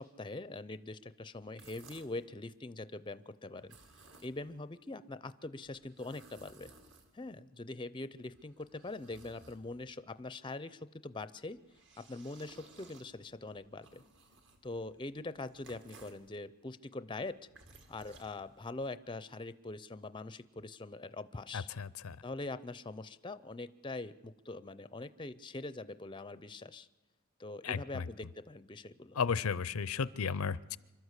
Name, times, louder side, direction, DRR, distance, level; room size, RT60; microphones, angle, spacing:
voice 1, 0.0-3.8 4.2-6.7 7.1-11.6 12.0-14.0 14.6-17.4 17.9-21.7 22.2-26.9 27.4-29.2, left 2 dB, 20° left, 14 dB, 0.5 m, -43 dB
sound 1, 1.4-2.3 3.6-4.6 5.6-7.4 8.1-10.0 11.4-16.3 17.2-18.9, right 3 dB, 55° right, 2.3 m, -60 dB
voice 2, 21.5-22.2 27.6-28.1 29.1-30.8, left 6 dB, 80° left, 19 dB, 0.6 m, -34 dB
25.5 x 12.5 x 8.2 m, 1.2 s
head